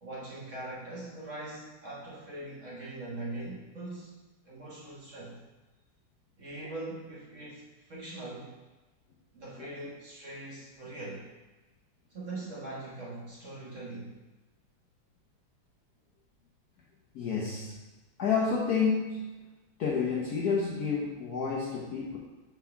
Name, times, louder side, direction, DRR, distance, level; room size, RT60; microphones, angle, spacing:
voice 1, 0.0-4.1 4.4-5.4 6.4-7.6 7.9-8.5 9.3-11.2 12.1-14.2, right 2 dB, 45° right, -5 dB, 1.3 m, -41 dB
voice 2, 17.1-17.7 18.2-19.3 19.8-22.2, left 5 dB, 60° left, -4 dB, 1.0 m, -29 dB
4.5 x 4.0 x 5.7 m, 1.2 s
omnidirectional pair, 2.3 m